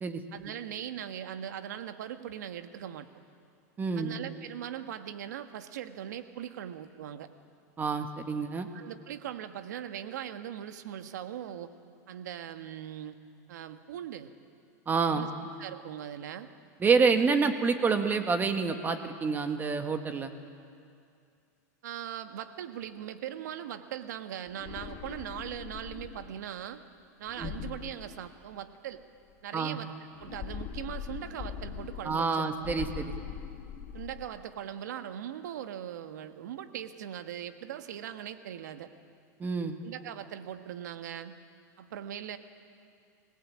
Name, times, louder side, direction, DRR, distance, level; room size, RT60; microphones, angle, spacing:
voice 1, 0.3-3.1 3.9-7.3 8.7-11.7 12.1-13.2 13.5-14.3 15.1-15.3 15.6-16.5 21.8-26.8 27.2-29.0 29.4-29.9 30.2-32.8 33.9-38.9 39.8-41.3 41.8-42.4, right 10 dB, 80° right, 9 dB, 1.4 m, -40 dB
voice 2, 3.8-4.1 7.8-8.7 14.9-15.3 16.8-20.3 27.4-27.5 29.5-29.8 32.0-33.1 39.4-39.8, right 5 dB, 20° right, 7 dB, 1.7 m, -27 dB
sound 1, 24.5-26.4 27.3-28.8 30.2-32.3 32.6-34.3, left 8 dB, 45° left, 1.7 m, -41 dB
25.5 x 17.5 x 8.6 m, 2.4 s
supercardioid pair, 130°, 9 cm